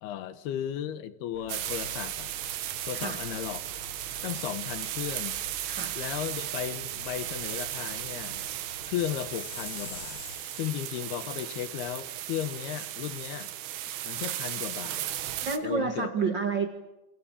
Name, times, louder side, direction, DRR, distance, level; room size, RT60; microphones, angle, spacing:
voice 1, 0.0-2.3 2.9-3.6 4.2-5.3 6.0-8.5 8.9-10.2 10.6-13.5 14.0-15.1 15.6-16.1, left 11 dB, 75° left, 13 dB, 2.9 m, -35 dB
sound 1, 1.3-10.4, left 1 dB, 35° left, 8.8 m, -49 dB
sound 2, 1.5-15.6, right 12 dB, 75° right, 3.5 m, -36 dB
voice 2, 5.7-6.0 15.4-16.7, right 4 dB, 60° right, 7 dB, 1.2 m, -29 dB
Chime, 9.1-11.1, left 8 dB, 50° left, 2.7 m, -46 dB
27.5 x 23.0 x 8.8 m, 0.98 s
omnidirectional pair, 5.1 m